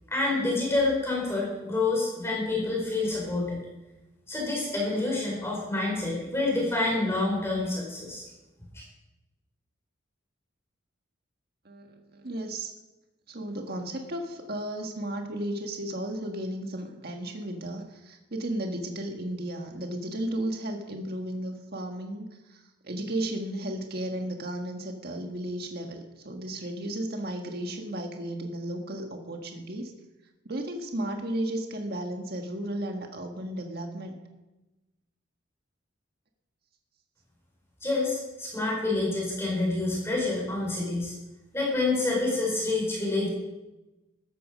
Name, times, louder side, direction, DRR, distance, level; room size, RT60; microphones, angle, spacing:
voice 1, 0.1-3.6 4.3-8.2 8.7-8.8 37.8-41.2 41.5-43.3, left 2 dB, 15° left, -3 dB, 4.9 m, -27 dB
voice 2, 12.1-12.7 13.3-29.9 30.4-34.2, right 1 dB, 50° right, 3 dB, 1.7 m, -34 dB
14.0 x 13.0 x 5.2 m, 1.0 s
head